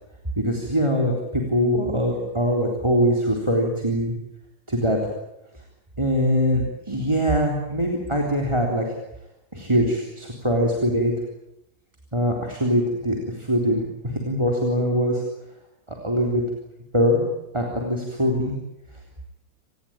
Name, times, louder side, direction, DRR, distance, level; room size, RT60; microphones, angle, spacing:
voice 1, 0.4-4.1 4.7-5.0 6.0-6.6 6.9-8.9 9.5-11.1 12.1-13.9 14.3-15.2 16.0-16.4 16.9-17.2 17.5-18.5, equal, 15° right, 1 dB, 3.6 m, -22 dB
28.0 x 19.0 x 8.9 m, 0.87 s
omnidirectional pair, 2.3 m